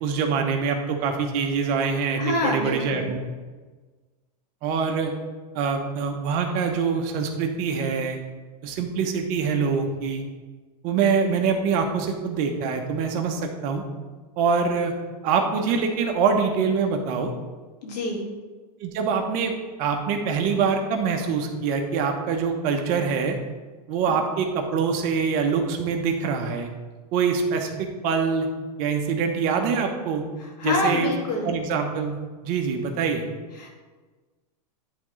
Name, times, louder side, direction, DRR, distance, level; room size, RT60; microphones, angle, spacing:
voice 1, 0.0-3.3 4.6-5.1 5.5-8.2 8.6-10.2 10.8-13.8 14.4-14.9 15.2-17.3 18.8-19.5 19.8-23.4 23.9-26.7 27.1-28.5 28.8-30.2 30.6-31.1 31.4-32.2 32.4-33.3, right 5 dB, 40° right, 4 dB, 0.9 m, -24 dB
voice 2, 2.2-3.1 17.8-18.2 30.4-31.5 33.6-33.7, left 2 dB, 75° left, -1 dB, 2.0 m, -26 dB
10.5 x 3.6 x 3.2 m, 1.3 s
supercardioid pair, 150°, 21 cm